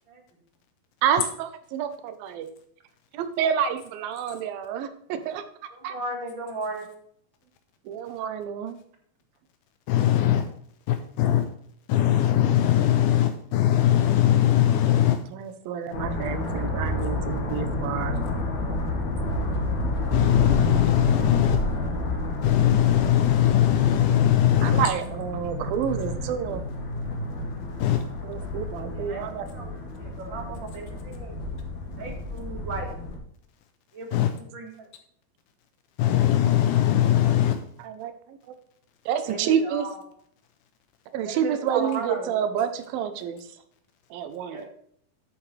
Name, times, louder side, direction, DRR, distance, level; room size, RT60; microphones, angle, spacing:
voice 1, 1.0-2.5 3.1-5.4 5.8-6.0 7.9-8.8 15.3-18.2 24.6-26.6 28.2-29.5 37.8-38.4 39.1-39.9 41.1-43.5 44.1-44.7, right 8 dB, 75° right, 10 dB, 2.5 m, -28 dB
voice 2, 5.7-6.9 28.9-31.4 32.0-32.9 33.9-34.9 39.2-40.0 41.3-42.3 44.4-44.6, right 3 dB, 40° right, 2 dB, 1.9 m, -36 dB
voice 3, 9.9-10.5 10.9-11.4 11.9-15.2 20.1-21.6 22.4-24.9 27.8-28.0 34.1-34.3 36.0-37.6, left 12 dB, 85° left, 6 dB, 1.8 m, -20 dB
sound 1, 15.9-33.2, left 1 dB, 55° left, 2.8 m, -30 dB
11.0 x 8.5 x 3.3 m, 0.66 s
omnidirectional pair, 4.4 m